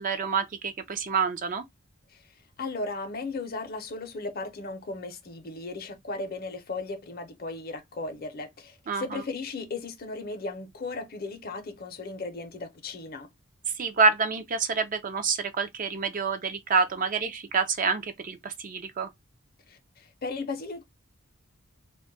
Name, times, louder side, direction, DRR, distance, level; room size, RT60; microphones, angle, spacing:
voice 1, 0.0-1.6 8.9-9.2 13.8-19.1, right 5 dB, 40° right, 0.4 m, -27 dB
voice 2, 2.6-13.3 19.7-20.8, left 3 dB, 45° left, 0.6 m, -36 dB
2.2 x 2.1 x 3.8 m
head